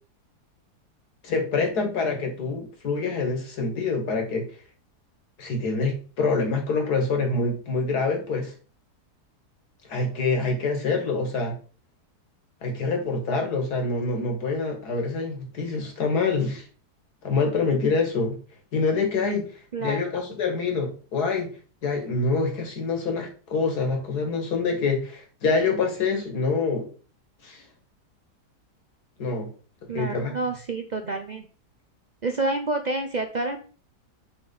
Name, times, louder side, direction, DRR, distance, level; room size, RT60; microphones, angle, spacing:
voice 1, 1.2-4.4 5.4-8.5 9.9-11.6 12.6-16.6 17.2-18.4 18.7-19.5 19.8-21.5 21.8-26.9 27.4-27.6 29.2-29.5 29.9-30.3, left 4 dB, 70° left, 3 dB, 2.2 m, -26 dB
voice 2, 29.9-31.4 32.2-33.6, right 2 dB, 65° right, 6 dB, 0.4 m, -28 dB
7.3 x 3.4 x 5.4 m, 0.38 s
omnidirectional pair, 1.7 m